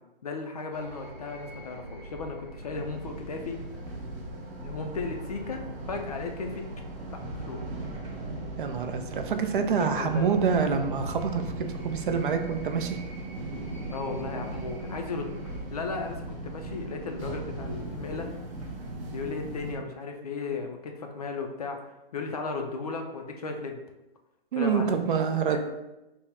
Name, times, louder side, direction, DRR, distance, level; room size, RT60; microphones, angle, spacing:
voice 1, 0.2-3.6 4.6-6.7 7.1-7.7 9.8-10.3 13.9-18.3 19.1-21.8 22.1-23.8 24.6-25.6, left 4 dB, 40° left, 4 dB, 0.4 m, -35 dB
sound 1, 0.7-15.7, right 1 dB, 80° right, 1.1 m, -43 dB
sound 2, 2.7-19.7, right 1 dB, 35° right, 0.8 m, -39 dB
voice 2, 8.6-13.0 24.5-25.6, right 6 dB, 60° right, 6 dB, 0.5 m, -26 dB
3.5 x 2.1 x 4.2 m, 0.98 s
hypercardioid pair, 165°, 30 cm